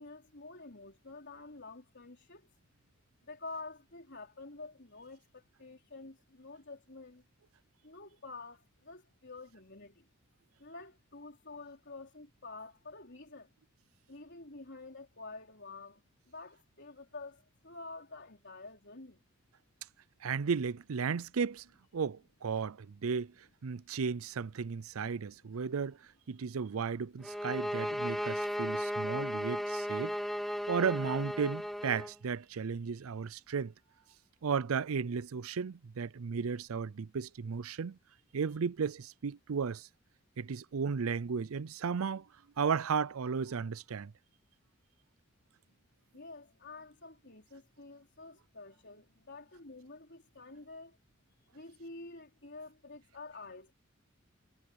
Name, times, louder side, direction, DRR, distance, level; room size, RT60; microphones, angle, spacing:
voice 1, 0.0-2.5 3.2-7.2 7.8-10.0 10.6-13.5 14.1-19.2 23.9-24.0 46.1-51.0 51.5-53.7, left 3 dB, 55° left, 4.3 m, -49 dB
voice 2, 20.2-21.7 21.9-23.3 23.6-26.0 26.3-30.1 30.7-33.7 34.4-38.0 38.3-39.9 40.4-42.3 42.6-44.1, right 6 dB, 90° right, 0.5 m, -34 dB
sound 1, 27.2-32.1, equal, ahead, 0.5 m, -35 dB
head